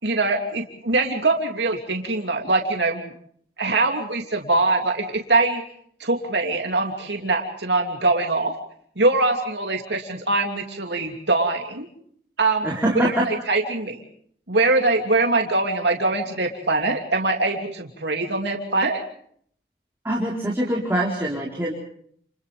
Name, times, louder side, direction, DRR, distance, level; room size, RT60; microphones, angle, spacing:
voice 1, 0.0-3.1 3.6-5.6 6.0-8.5 9.0-11.9 12.4-12.7 12.9-14.0 14.5-19.0, right 2 dB, 85° right, 2 dB, 2.9 m, -23 dB
voice 2, 12.6-13.3 20.0-21.7, right 1 dB, 15° right, -3 dB, 4.4 m, -23 dB
30.0 x 29.5 x 3.5 m, 0.63 s
head